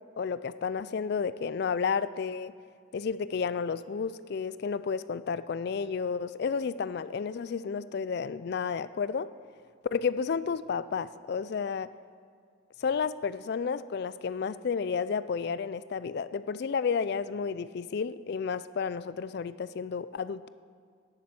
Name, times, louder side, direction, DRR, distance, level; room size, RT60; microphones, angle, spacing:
voice 1, 0.2-2.5 2.9-9.3 9.9-11.9 12.8-20.5, left 6 dB, 50° left, 15 dB, 0.3 m, -31 dB
11.0 x 7.6 x 7.1 m, 2.2 s
head